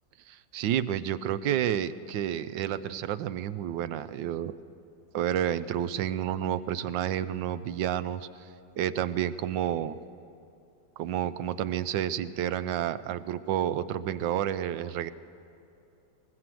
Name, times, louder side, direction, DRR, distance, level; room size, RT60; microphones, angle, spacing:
voice 1, 0.3-4.5 5.1-8.3 8.8-10.0 11.0-15.1, right 10 dB, 80° right, 14 dB, 1.4 m, -30 dB
22.0 x 19.5 x 7.6 m, 2.7 s
omnidirectional pair, 2.0 m